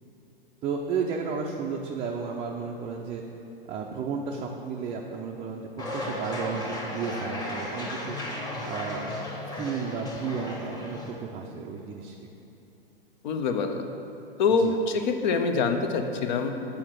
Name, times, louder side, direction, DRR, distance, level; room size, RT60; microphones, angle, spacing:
voice 1, 0.6-3.2 3.7-8.2 8.6-9.1 9.6-12.1 14.6-14.7, right 5 dB, 20° right, -1 dB, 0.5 m, -33 dB
sound 1, 5.8-11.1, left 1 dB, 15° left, 1.1 m, -35 dB
voice 2, 13.2-13.8 14.4-16.8, left 4 dB, 50° left, 6 dB, 0.8 m, -25 dB
7.2 x 4.5 x 6.4 m, 2.8 s
figure-of-eight pair, 100°, 29 cm